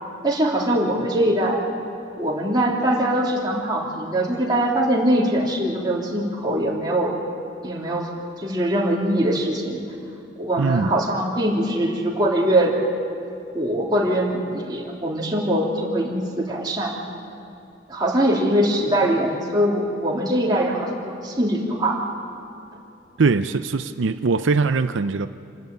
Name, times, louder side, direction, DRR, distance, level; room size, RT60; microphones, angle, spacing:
voice 1, 0.2-1.6 2.2-7.1 7.6-8.1 8.4-9.8 10.4-12.7 13.5-16.9 17.9-22.0, right 1 dB, 20° right, -3 dB, 3.3 m, -22 dB
voice 2, 10.6-10.9 23.2-25.3, right 4 dB, 85° right, 10 dB, 0.5 m, -21 dB
27.5 x 12.5 x 9.2 m, 2.7 s
head